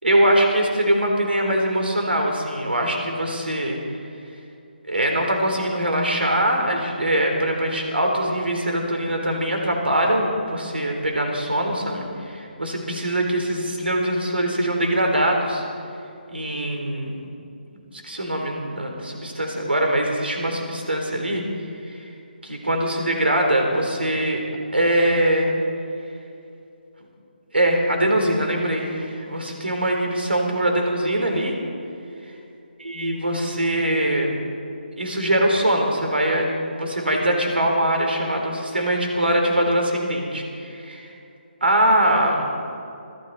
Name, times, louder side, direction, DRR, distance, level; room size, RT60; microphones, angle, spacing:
voice 1, 0.0-3.8 4.9-15.6 16.3-17.2 17.7-17.8 18.0-21.4 21.9-22.1 22.4-24.4 24.7-25.5 27.5-31.5 32.8-34.4 35.0-41.1 41.6-42.5, right 1 dB, 80° right, 2 dB, 3.7 m, -22 dB
26.0 x 12.5 x 4.2 m, 2.7 s
figure-of-eight pair, 150°, 6 cm